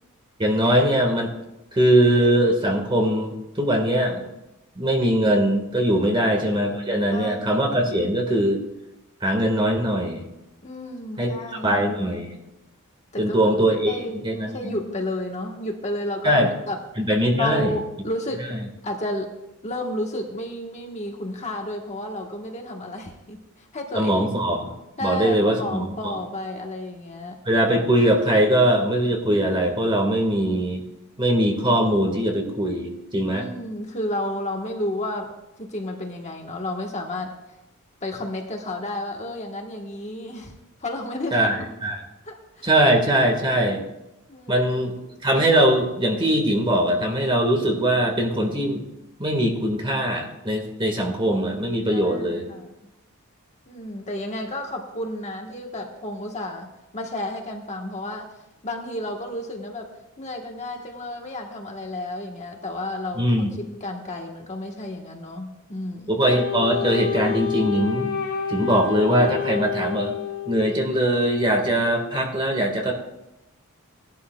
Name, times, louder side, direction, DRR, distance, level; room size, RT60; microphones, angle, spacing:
voice 1, 0.4-1.3 1.7-4.2 4.8-8.6 9.2-10.2 11.2-11.3 11.6-12.3 13.2-14.0 14.2-14.5 16.2-16.5 17.0-17.8 24.0-24.7 25.0-26.2 27.5-30.8 31.2-33.5 41.3-42.0 42.6-43.8 44.5-44.9 45.2-48.8 49.2-52.5 63.2-63.5 66.1-68.1 68.5-70.1 70.5-72.9, right 1 dB, 20° right, 2 dB, 1.6 m, -21 dB
voice 2, 7.1-7.6 10.6-11.8 13.1-13.4 13.9-16.8 17.4-18.5 18.8-19.3 19.6-24.3 25.0-27.4 33.2-35.3 35.6-37.3 38.0-40.5 40.8-41.7 42.2-42.7 44.3-44.6 51.9-52.7 53.7-58.3 58.6-59.9 60.2-66.2, left 1 dB, 30° left, 2 dB, 1.2 m, -32 dB
Wind instrument woodwind instrument, 66.3-70.9, left 8 dB, 75° left, 2.2 m, -28 dB
18.5 x 12.0 x 2.3 m, 0.96 s
head